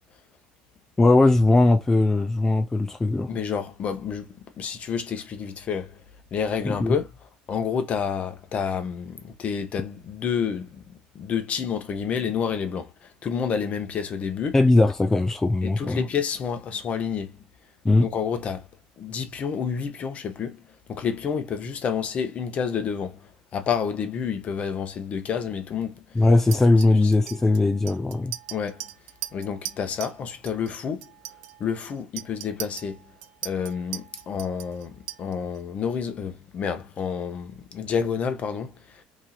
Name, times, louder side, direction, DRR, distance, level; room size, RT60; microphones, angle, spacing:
voice 1, 1.0-3.3 6.6-7.0 14.5-16.0 17.8-18.1 26.2-28.3, left 2 dB, 10° left, 0.4 m, -19 dB
voice 2, 3.3-6.0 6.3-14.6 15.6-17.4 18.0-18.7 19.0-26.3 26.9-27.1 28.5-28.9 29.3-31.1 31.6-33.1 33.4-39.0, left 7 dB, 40° left, 1.0 m, -29 dB
Chink clink, 26.5-30.2 30.5-30.7 31.0-35.6, right 14 dB, 90° right, 0.6 m, -39 dB
3.1 x 2.7 x 4.0 m
supercardioid pair, 105°, 3 cm